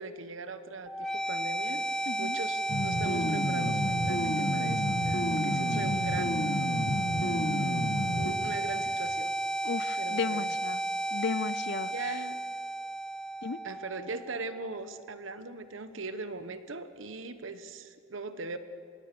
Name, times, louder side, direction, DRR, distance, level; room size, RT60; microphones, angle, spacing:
voice 1, 0.0-1.8 2.2-6.4 7.2-9.3 10.0-10.5 11.9-12.4 13.6-18.6, right 3 dB, 75° right, 11 dB, 1.2 m, -40 dB
sound 1, 0.9-14.8, right 2 dB, 5° left, 0.5 m, -33 dB
voice 2, 2.1-2.4 5.7-6.0 6.8-7.0 9.6-10.8 11.1-12.2 13.4-13.6, left 5 dB, 55° left, 17 dB, 0.5 m, -35 dB
sound 2, 2.7-8.3, left 1 dB, 70° left, 1.8 m, -31 dB
26.5 x 21.5 x 6.9 m, 2.3 s
head